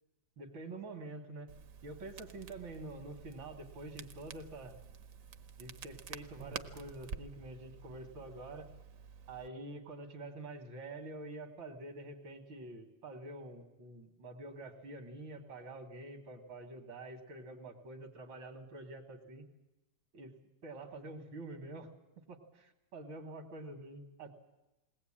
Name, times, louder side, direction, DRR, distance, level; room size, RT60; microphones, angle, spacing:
voice 1, 0.4-1.5 1.8-4.8 5.6-8.7 9.3-19.5 20.1-20.3 20.6-21.9 22.3-24.3, right 2 dB, 85° right, 3 dB, 2.3 m, -47 dB
Crackle, 1.5-9.5, right 6 dB, 55° right, 1.1 m, -49 dB
21.0 x 18.0 x 8.7 m, 1.0 s
omnidirectional pair, 2.1 m